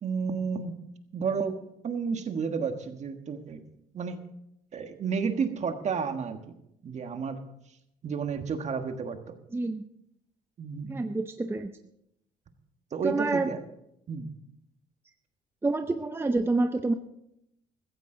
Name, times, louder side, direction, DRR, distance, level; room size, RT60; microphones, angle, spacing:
voice 1, 0.0-0.8 1.1-1.5 1.8-3.6 3.9-4.2 4.7-6.5 6.8-7.4 8.0-9.4 10.6-11.0 12.9-13.6 14.1-14.3, right 5 dB, 45° right, 7 dB, 1.5 m, -31 dB
voice 2, 9.5-9.8 10.9-11.7 13.0-13.5 15.6-16.9, right 3 dB, 15° right, 8 dB, 0.6 m, -27 dB
15.0 x 14.5 x 3.8 m, 0.80 s
cardioid pair, 110°, 17 cm